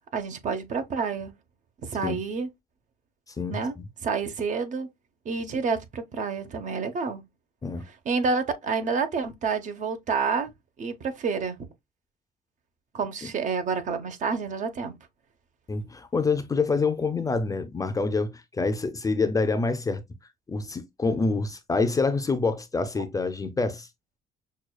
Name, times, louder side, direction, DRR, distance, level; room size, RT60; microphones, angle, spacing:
voice 1, 0.1-1.3 1.8-2.5 3.5-3.7 4.0-4.9 5.2-7.2 8.1-10.5 10.8-11.6 12.9-15.0 23.0-23.1, right 5 dB, 45° right, 0.8 m, -28 dB
voice 2, 3.4-3.8 7.6-7.8 13.2-13.3 15.7-20.0 20.5-23.9, left 4 dB, 20° left, 0.5 m, -26 dB
6.1 x 2.3 x 2.2 m
cardioid pair, 110°, 17 cm